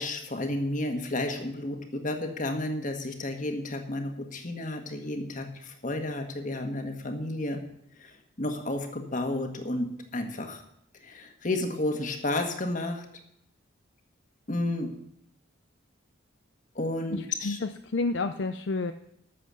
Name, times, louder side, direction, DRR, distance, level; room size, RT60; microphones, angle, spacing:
voice 1, 0.0-7.6 8.0-10.6 11.0-13.0 14.5-14.9 16.7-17.6, left 1 dB, 40° left, 5 dB, 1.6 m, -32 dB
voice 2, 17.1-18.9, left 3 dB, 60° left, 9 dB, 0.5 m, -30 dB
12.5 x 7.6 x 6.3 m, 0.76 s
head